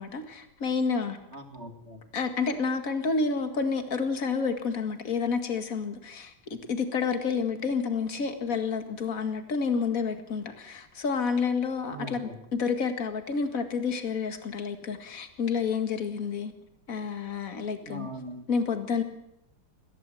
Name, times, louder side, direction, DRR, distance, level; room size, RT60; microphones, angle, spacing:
voice 1, 0.0-1.2 2.1-16.5 16.9-18.1 18.5-19.0, left 5 dB, 45° left, 2.3 m, -29 dB
voice 2, 1.3-2.0 11.8-12.4 17.8-18.5, right 1 dB, 35° right, 2.8 m, -41 dB
22.0 x 15.5 x 7.7 m
omnidirectional pair, 2.1 m